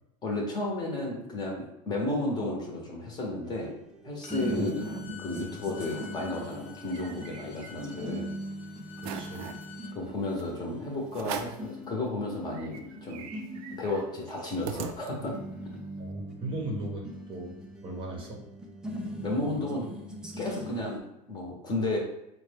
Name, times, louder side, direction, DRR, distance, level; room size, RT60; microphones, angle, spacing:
voice 1, 0.2-3.7 4.0-8.3 9.9-13.2 13.8-15.3 19.2-19.9 20.4-21.0 21.3-22.0, left 2 dB, 20° left, -1 dB, 0.8 m, -33 dB
sound 1, 3.4-21.0, equal, 5° right, 0.4 m, -41 dB
Bowed string instrument, 4.2-9.9, left 7 dB, 50° left, 0.7 m, -48 dB
sound 2, 4.2-5.0 5.4-5.5 5.8-6.1 6.5-8.1 8.5-8.6 9.0-9.7 10.4-10.5 11.1-11.7 12.2-12.3 12.5-15.5, right 7 dB, 75° right, 0.5 m, -41 dB
voice 2, 9.0-9.5 10.6-10.7 16.0-17.5 17.8-18.4, right 2 dB, 25° right, -1 dB, 0.7 m, -37 dB
4.6 x 2.2 x 3.3 m, 0.87 s
supercardioid pair, 145°, 19 cm